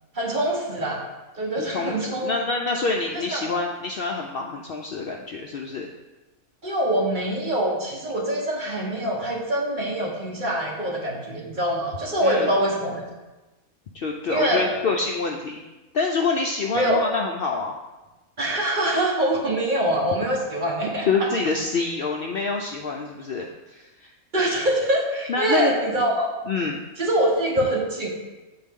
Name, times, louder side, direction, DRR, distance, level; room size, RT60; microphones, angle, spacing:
voice 1, 0.1-1.0 1.4-2.3 3.3-3.5 6.6-13.1 14.3-14.7 16.7-17.1 18.4-21.3 24.3-26.3 27.0-28.1, right 1 dB, 35° right, -2 dB, 1.1 m, -24 dB
voice 2, 1.6-5.9 12.2-12.5 13.9-15.6 15.9-17.7 21.0-24.1 25.3-26.0 26.5-26.8, left 4 dB, 90° left, 1 dB, 0.5 m, -26 dB
8.5 x 3.9 x 3.6 m, 1.1 s
omnidirectional pair, 1.5 m